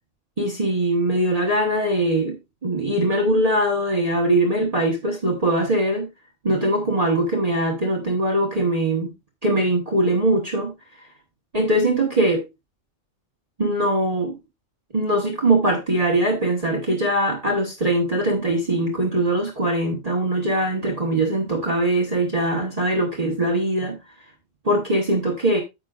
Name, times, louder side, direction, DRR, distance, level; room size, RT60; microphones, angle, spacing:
voice 1, 0.4-2.4 2.6-6.1 6.4-9.1 9.4-10.7 11.5-12.4 13.6-14.3 14.9-24.0 24.6-25.6, right 1 dB, 30° right, 1.3 m, -21 dB
9.7 x 7.5 x 2.4 m
omnidirectional pair, 1.3 m